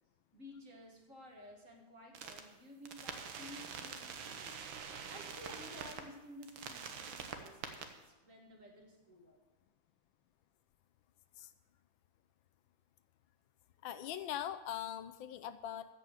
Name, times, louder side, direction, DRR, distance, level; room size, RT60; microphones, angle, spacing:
voice 1, 0.3-9.4, left 1 dB, 40° right, 1 dB, 2.2 m, -54 dB
sound 1, 2.1-2.4 2.8-6.0 6.4-7.8, right 6 dB, 90° right, 1.8 m, -45 dB
voice 2, 13.8-15.9, left 11 dB, 80° left, 12 dB, 1.4 m, -41 dB
14.5 x 5.4 x 7.9 m, 1.1 s
omnidirectional pair, 2.1 m